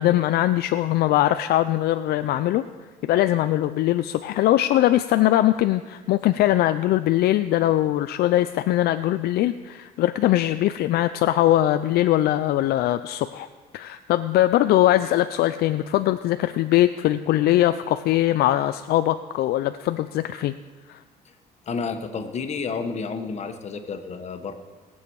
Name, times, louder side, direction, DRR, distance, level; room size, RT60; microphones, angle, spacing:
voice 1, 0.0-2.7 3.0-13.5 13.7-20.5 20.9-21.0, left 14 dB, 70° left, 10 dB, 0.4 m, -21 dB
voice 2, 21.7-24.5, left 5 dB, 40° left, 6 dB, 1.3 m, -30 dB
20.0 x 7.1 x 4.7 m, 1.3 s
cardioid pair, 110°, 17 cm